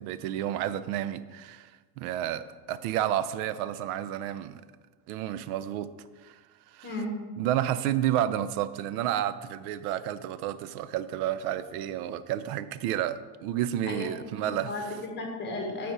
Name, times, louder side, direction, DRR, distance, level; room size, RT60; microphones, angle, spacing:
voice 1, 0.0-1.7 2.0-4.6 5.1-5.9 6.2-6.4 6.7-6.9 7.4-14.7, right 11 dB, 80° right, 14 dB, 0.6 m, -30 dB
voice 2, 6.8-7.1 13.9-14.1 14.4-15.9, left 2 dB, 25° left, 2 dB, 1.3 m, -34 dB
8.2 x 4.5 x 4.7 m, 1.4 s
cardioid pair, 155°, 44 cm